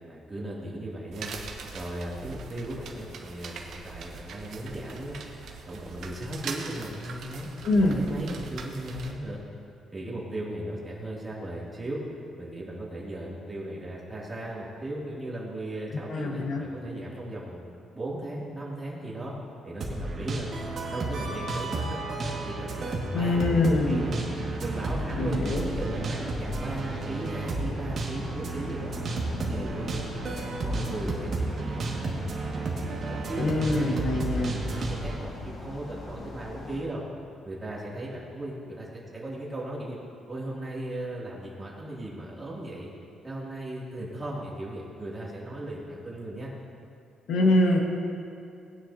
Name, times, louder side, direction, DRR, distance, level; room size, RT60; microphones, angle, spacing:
voice 1, 0.1-1.3 1.7-5.2 5.6-7.5 7.8-9.4 9.9-12.0 12.4-17.6 17.9-19.3 19.6-20.5 20.9-22.0 22.3-24.2 24.6-25.4 25.7-29.0 29.2-30.1 30.6-34.0 34.3-37.0 37.4-40.0 40.3-42.9 43.2-46.5, right 1 dB, 20° right, -5 dB, 2.7 m, -37 dB
sound 1, 1.1-9.1, right 4 dB, 65° right, 1.2 m, -41 dB
voice 2, 7.6-8.0 16.1-16.6 23.1-24.1 25.2-25.7 33.4-34.6 47.3-47.8, left 2 dB, 70° left, 0 dB, 1.7 m, -24 dB
sound 2, 19.8-35.2, right 3 dB, 45° right, 2.0 m, -32 dB
sound 3, 23.2-36.8, left 2 dB, 50° left, 2.0 m, -41 dB
19.0 x 9.9 x 2.8 m, 2.5 s
cardioid pair, 135°, 0 cm